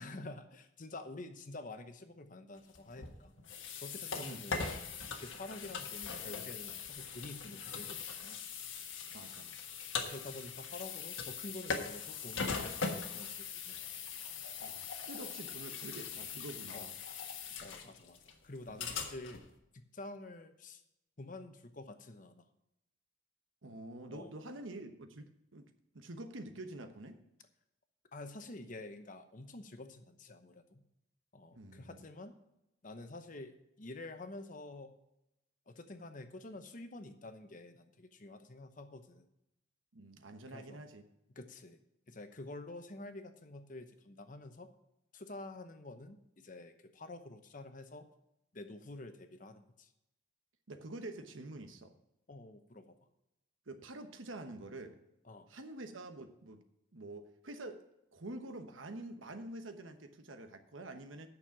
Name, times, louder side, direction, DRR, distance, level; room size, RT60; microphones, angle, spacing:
voice 1, 0.0-3.3 3.8-4.8 5.2-8.4 10.0-14.0 16.7-16.9 17.6-18.2 18.4-19.4 19.7-20.8 21.2-22.5 24.1-24.3 28.1-30.8 31.3-32.4 32.8-33.5 33.8-34.9 35.7-39.3 40.5-40.8 41.3-41.8 42.1-44.7 45.1-48.1 48.5-49.9 52.3-53.0 55.3-55.5, left 2 dB, 40° left, 8 dB, 0.9 m, -48 dB
sound 1, 2.7-19.5, left 5 dB, 90° left, 1.4 m, -41 dB
voice 2, 9.1-9.5 14.6-16.9 23.6-25.7 25.9-27.2 31.5-32.0 39.9-41.1 50.7-51.9 53.7-55.0 55.5-56.6 56.9-57.8 58.1-61.3, right 2 dB, 85° right, 8 dB, 1.1 m, -47 dB
9.1 x 6.5 x 7.2 m, 0.86 s
head